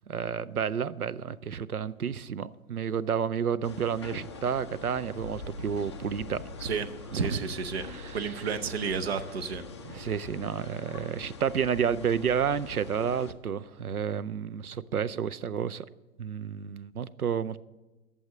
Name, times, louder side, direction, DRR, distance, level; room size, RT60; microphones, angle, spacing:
voice 1, 0.1-6.4 7.1-7.4 7.9-8.3 9.9-15.9 16.2-17.6, right 7 dB, 85° right, 16 dB, 0.6 m, -30 dB
sound 1, 3.6-13.3, left 4 dB, 20° left, 0.4 m, -44 dB
voice 2, 7.1-7.9 8.1-9.6, right 5 dB, 45° right, 10 dB, 0.9 m, -31 dB
12.0 x 7.1 x 7.3 m, 1.2 s
figure-of-eight pair, 125°, 43 cm